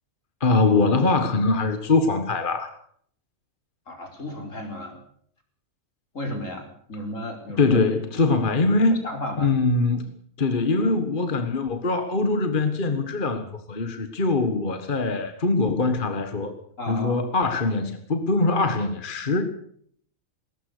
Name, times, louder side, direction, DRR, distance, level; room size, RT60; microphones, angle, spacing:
voice 1, 0.4-2.7 7.6-9.0 9.4-10.1 10.4-16.5 16.9-19.4, left 3 dB, 40° left, 8 dB, 1.7 m, -22 dB
voice 2, 3.9-5.0 6.1-7.8 9.0-9.6 16.8-17.2, left 1 dB, 65° left, 4 dB, 4.8 m, -34 dB
20.5 x 19.0 x 6.7 m, 0.63 s
omnidirectional pair, 1.4 m